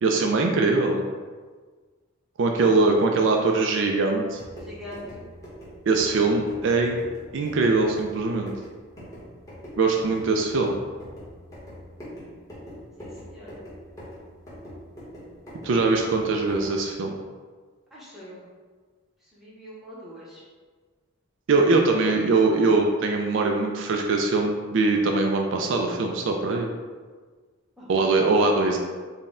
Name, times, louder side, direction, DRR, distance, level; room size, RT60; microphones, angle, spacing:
voice 1, 0.0-1.0 2.4-4.4 5.9-7.0 7.3-8.5 9.8-10.8 15.6-17.1 21.5-26.7 27.9-28.8, right 3 dB, 60° right, 2 dB, 0.4 m, -22 dB
sound 1, 4.2-16.9, equal, 15° left, 1.1 m, -43 dB
voice 2, 4.5-5.3 13.0-13.6 17.9-18.5 19.2-20.4 27.8-28.1, left 1 dB, ahead, -8 dB, 0.8 m, -43 dB
4.0 x 2.2 x 3.7 m, 1.5 s
head